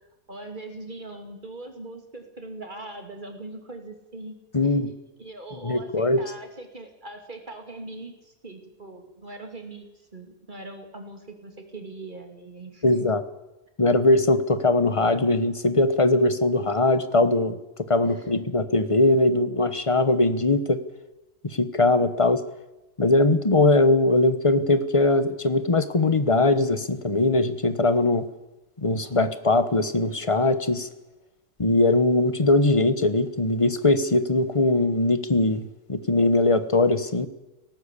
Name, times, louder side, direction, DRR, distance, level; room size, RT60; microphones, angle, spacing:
voice 1, 0.3-4.4 4.6-4.9 5.2-9.9 10.1-13.0 18.1-18.3, right 2 dB, 30° right, 5 dB, 2.9 m, -41 dB
voice 2, 4.5-4.9 5.6-6.2 12.8-13.2 13.8-17.6 17.9-20.8 21.5-22.4 23.0-28.2 28.8-30.9 31.6-37.3, left 2 dB, 25° left, 12 dB, 1.0 m, -21 dB
18.0 x 17.5 x 8.4 m, 1.0 s
omnidirectional pair, 1.6 m